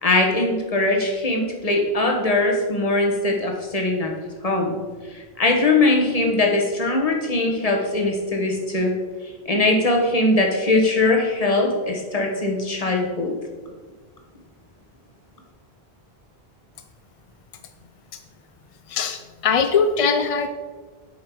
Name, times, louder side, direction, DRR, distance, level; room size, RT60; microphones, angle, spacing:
voice 1, 0.0-4.1 4.4-4.7 5.1-8.9 9.4-13.3, left 2 dB, 35° left, 1 dB, 1.2 m, -21 dB
voice 2, 18.9-20.5, left 5 dB, 55° left, 7 dB, 0.4 m, -21 dB
7.9 x 5.2 x 4.7 m, 1.4 s
omnidirectional pair, 1.1 m